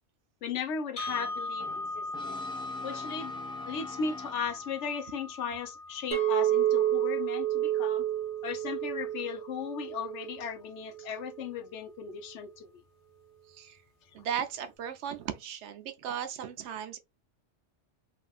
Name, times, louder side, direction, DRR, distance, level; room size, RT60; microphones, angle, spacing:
voice 1, 0.4-2.4 2.8-3.3 3.7-8.0 8.4-12.7, left 6 dB, 75° left, 1.0 m, -36 dB
sound 1, 1.0-9.0, left 2 dB, 35° left, 0.8 m, -40 dB
Brass instrument, 1.1-4.9, left 3 dB, 5° left, 0.5 m, -47 dB
Chink clink, 6.1-10.4 10.9-11.3, right 12 dB, 45° right, 1.0 m, -29 dB
voice 2, 13.5-13.8 14.1-17.0, right 9 dB, 70° right, 0.8 m, -36 dB
3.4 x 2.5 x 2.3 m
omnidirectional pair, 1.2 m